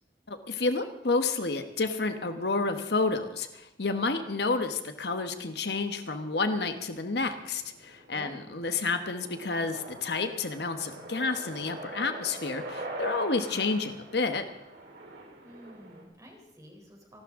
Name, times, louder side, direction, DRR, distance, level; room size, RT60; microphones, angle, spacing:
voice 1, 0.3-14.5, left 3 dB, 65° left, 8 dB, 1.2 m, -30 dB
sound 1, 5.0-16.0, right 1 dB, 75° right, 4.1 m, -44 dB
voice 2, 8.1-8.5 15.4-17.2, equal, 20° right, 0 dB, 3.7 m, -50 dB
28.5 x 12.0 x 3.7 m, 0.92 s
head